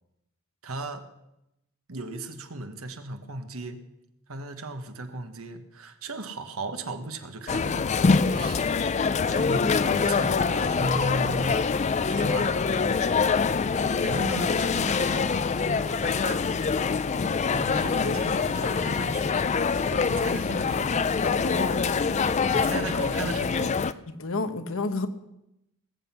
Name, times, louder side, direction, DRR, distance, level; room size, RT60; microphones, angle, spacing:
voice 1, 0.6-1.1 1.9-3.9 4.3-8.7 9.1-11.7 12.1-12.8 14.0-16.5 17.5-19.3 19.9-21.0 22.5-23.7, right 2 dB, 85° right, 7 dB, 1.4 m, -36 dB
sound 1, 7.5-23.9, left 5 dB, 30° left, 0.4 m, -25 dB
voice 2, 18.0-18.8 21.2-21.9 22.5-22.8 24.1-25.1, left 3 dB, 65° left, 9 dB, 1.0 m, -32 dB
19.5 x 7.9 x 5.7 m, 0.88 s
head